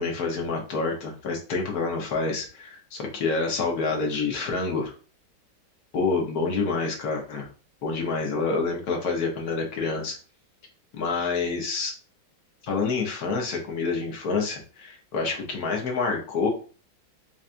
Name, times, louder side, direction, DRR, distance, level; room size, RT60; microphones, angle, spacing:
voice 1, 0.0-4.9 5.9-7.5 7.8-10.2 10.9-11.9 12.6-16.5, left 4 dB, 55° left, 1 dB, 1.2 m, -27 dB
5.5 x 2.4 x 2.5 m, 0.37 s
omnidirectional pair, 2.3 m